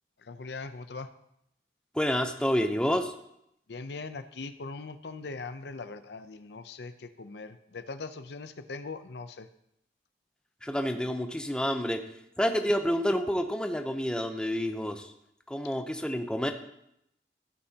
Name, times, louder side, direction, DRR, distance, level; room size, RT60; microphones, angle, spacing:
voice 1, 0.2-1.1 3.7-9.5, left 3 dB, 75° left, 11 dB, 0.6 m, -40 dB
voice 2, 1.9-3.1 10.6-12.0 12.4-15.1 15.5-16.5, equal, 5° left, 6 dB, 0.7 m, -28 dB
16.0 x 8.7 x 2.9 m, 0.77 s
head